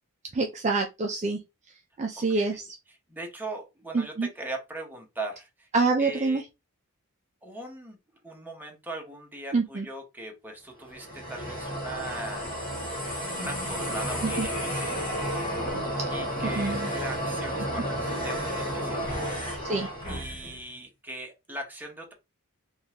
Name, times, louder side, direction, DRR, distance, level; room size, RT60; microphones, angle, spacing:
voice 1, 0.3-1.4 2.0-2.8 3.9-4.3 5.7-6.4 9.5-9.9 14.2-14.5 16.0-16.9 19.6-19.9, right 3 dB, 30° right, 0.4 m, -27 dB
voice 2, 2.2-2.6 3.1-5.7 6.0-6.4 7.4-8.0 8.2-12.6 13.1-15.0 16.1-19.1 20.1-22.1, right 2 dB, 10° right, 0.8 m, -39 dB
sound 1, 10.8-20.6, equal, 25° left, 1.8 m, -32 dB
3.7 x 2.4 x 2.8 m
head